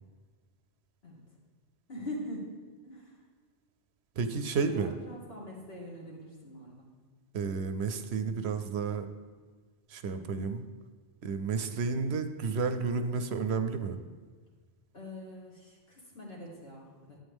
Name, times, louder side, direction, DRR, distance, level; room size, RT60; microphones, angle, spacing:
voice 1, 1.9-2.5 2.8-3.2 4.7-6.9 10.1-10.3 14.9-17.2, left 1 dB, 60° left, -3 dB, 2.4 m, -43 dB
voice 2, 4.2-4.9 7.3-9.1 9.9-10.6 11.2-14.0, right 5 dB, 70° right, 9 dB, 0.9 m, -31 dB
11.5 x 8.6 x 3.5 m, 1.5 s
omnidirectional pair, 1.2 m